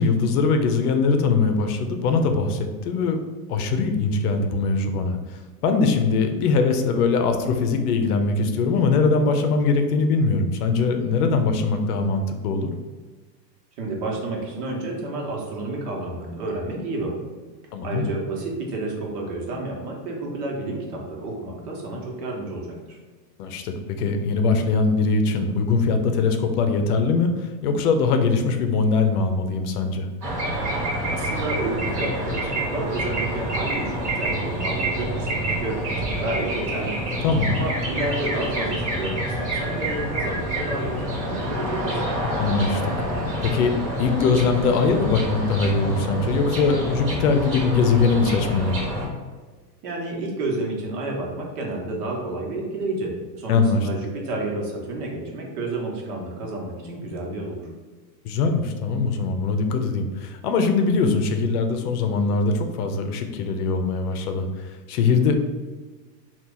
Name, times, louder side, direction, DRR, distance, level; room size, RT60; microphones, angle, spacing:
voice 1, 0.0-3.2 3.5-5.2 5.6-12.7 17.7-18.1 23.4-30.1 37.2-37.6 42.3-42.8 43.4-43.7 44.0-48.8 53.5-53.9 58.2-64.5 64.9-65.3, left 4 dB, 65° left, 6 dB, 0.6 m, -21 dB
voice 2, 13.8-17.2 17.8-23.0 31.1-37.0 37.5-42.3 49.8-57.7, right 2 dB, 60° right, -1 dB, 1.1 m, -30 dB
sound 1, 30.2-49.1, right 1 dB, 35° right, 1.1 m, -27 dB
2.9 x 2.4 x 3.6 m, 1.4 s
supercardioid pair, 155°, 50 cm